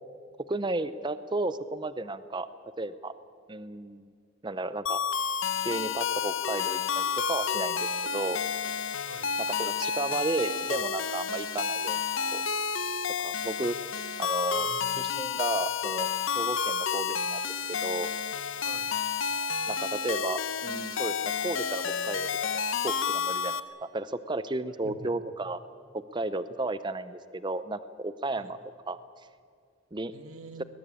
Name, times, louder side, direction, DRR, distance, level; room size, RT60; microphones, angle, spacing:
voice 1, 0.5-2.5 2.8-3.1 3.5-4.0 4.4-5.0 5.6-8.4 9.6-12.0 12.3-12.4 13.2-13.8 14.2-16.1 16.3-17.4 17.7-18.1 19.7-22.3 22.5-25.6 25.9-28.6 28.9-29.0 29.9-30.1, right 2 dB, 20° right, 14 dB, 0.6 m, -33 dB
sound 1, 4.9-23.6, left 6 dB, 60° left, 0.8 m, -30 dB
voice 2, 14.5-15.1 18.6-18.9 24.8-25.1 28.4-28.5 30.1-30.6, right 3 dB, 85° right, 9 dB, 1.4 m, -45 dB
21.5 x 21.0 x 8.6 m, 2.3 s
head